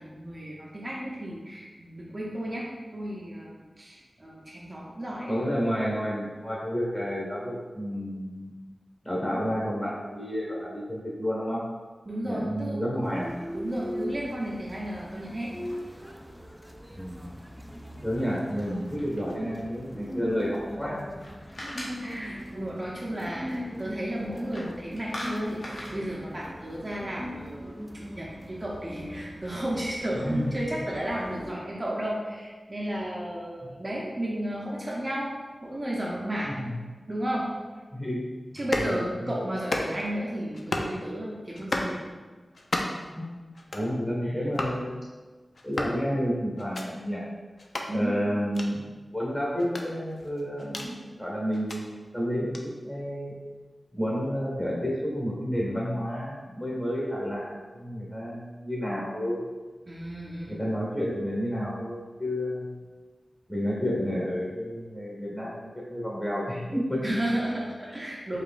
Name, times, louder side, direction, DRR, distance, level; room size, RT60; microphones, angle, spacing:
voice 1, 0.0-2.7 2.9-5.4 12.1-12.8 13.5-15.5 22.0-35.3 35.6-36.7 37.1-37.5 38.5-42.0 44.2-44.4 47.9-48.1 59.9-60.6 67.0-68.4, right 1 dB, 30° right, -4 dB, 0.7 m, -33 dB
voice 2, 5.3-8.5 9.0-11.6 12.2-13.3 17.0-17.3 18.0-21.1 30.1-30.5 33.6-33.7 36.4-36.7 37.9-38.3 38.5-38.9 39.2-39.3 43.1-43.3 43.7-45.0 45.6-47.2 47.9-48.8 49.1-51.9 52.1-52.6 52.8-53.3 53.9-59.5 60.5-62.8 63.5-67.2, equal, 20° left, -5 dB, 1.4 m, -30 dB
sound 1, 13.0-31.5, equal, 5° right, 0.3 m, -40 dB
sound 2, 18.6-19.5 20.9-22.5 24.3-24.7 25.0-26.0, left 1 dB, 85° left, 0.9 m, -40 dB
sound 3, 38.6-38.9 39.5-40.1 40.5-41.0 41.5-41.9 42.5-43.1 43.5-43.9 44.5-44.8 45.5-46.0 46.6-46.9 47.6-47.9 48.5-48.7 49.6-50.9 51.5-51.8 52.5-52.6, left 2 dB, 70° left, 0.4 m, -32 dB
4.8 x 3.2 x 2.5 m, 1.3 s
wide cardioid pair, 85°, 0 cm